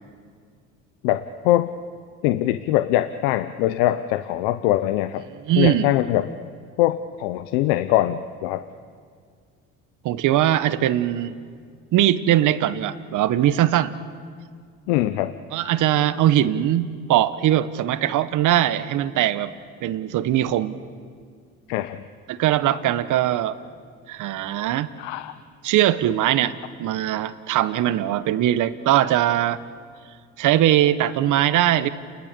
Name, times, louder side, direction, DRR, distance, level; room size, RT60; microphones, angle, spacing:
voice 1, 1.0-1.7 2.2-5.2 5.6-6.3 6.8-8.6 14.9-15.3 21.7-22.0 25.0-25.4, left 14 dB, 85° left, 11 dB, 0.8 m, -22 dB
voice 2, 5.5-5.9 10.0-11.3 11.9-14.0 15.5-19.5 19.8-20.8 22.3-23.6 24.1-24.9 25.6-26.5 26.8-29.6 30.4-31.9, right 12 dB, 65° right, 14 dB, 1.2 m, -21 dB
30.0 x 20.5 x 6.9 m, 2.1 s
supercardioid pair, 70°, 32 cm